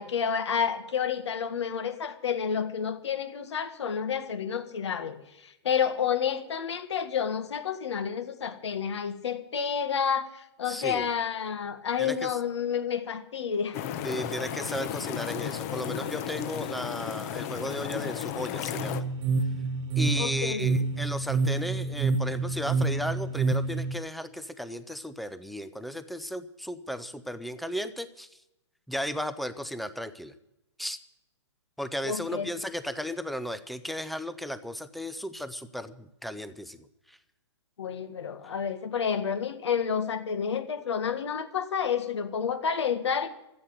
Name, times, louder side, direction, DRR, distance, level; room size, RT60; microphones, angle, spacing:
voice 1, 0.0-13.8 14.0-14.2 20.2-20.7 32.0-32.5 37.8-43.3, left 7 dB, 75° left, 8 dB, 1.8 m, -30 dB
voice 2, 10.7-11.1 12.0-12.3 14.0-19.0 20.0-28.3 28.9-30.3 30.8-31.0 31.8-37.2, equal, ahead, 12 dB, 0.5 m, -35 dB
sound 1, 13.7-19.0, left 10 dB, 35° left, 0.9 m, -34 dB
sound 2, 18.8-24.0, right 4 dB, 25° right, 0.9 m, -28 dB
14.5 x 8.5 x 8.9 m, 0.87 s
hypercardioid pair, 150°, 15 cm